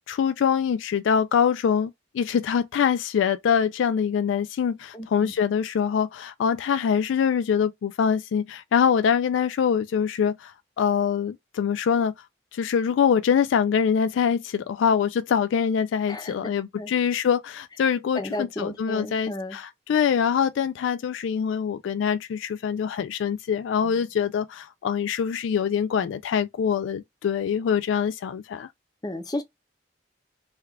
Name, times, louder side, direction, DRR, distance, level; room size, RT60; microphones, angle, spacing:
voice 1, 0.1-12.1 12.5-28.7, left 7 dB, 85° left, 0.3 m, -24 dB
voice 2, 4.9-5.3 16.1-16.9 18.1-19.6 23.8-24.1 29.0-29.4, left 1 dB, 20° left, 0.6 m, -34 dB
3.4 x 2.3 x 3.3 m
head